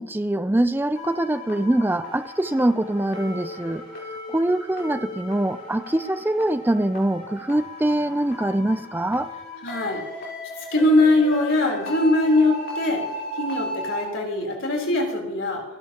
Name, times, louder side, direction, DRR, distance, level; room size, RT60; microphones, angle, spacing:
voice 1, 0.0-3.8 4.3-9.3, right 1 dB, 10° right, 11 dB, 0.4 m, -23 dB
sound 1, 1.0-14.1, left 1 dB, 60° left, 4.4 m, -36 dB
voice 2, 9.6-10.0 10.7-13.0 13.4-15.6, left 2 dB, 75° left, 0 dB, 3.7 m, -21 dB
28.0 x 11.5 x 2.9 m, 1.0 s
head